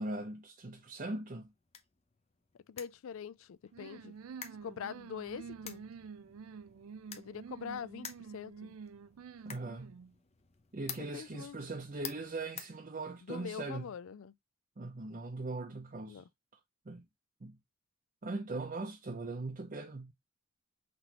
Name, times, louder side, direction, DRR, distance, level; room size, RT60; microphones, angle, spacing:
voice 1, 0.0-1.5 9.4-10.0 10.7-13.9 14.8-16.2 16.9-17.1 17.4-17.6 18.2-20.1, right 2 dB, 40° right, 0.6 m, -40 dB
sound 1, 1.2-13.5, left 7 dB, 30° left, 0.7 m, -52 dB
voice 2, 2.7-4.1 4.6-5.8 7.1-8.8 11.1-11.6 13.2-14.3 16.1-16.3, left 7 dB, 70° left, 0.4 m, -44 dB
sound 2, 3.7-10.1, right 6 dB, 85° right, 0.4 m, -48 dB
5.9 x 3.1 x 2.8 m
head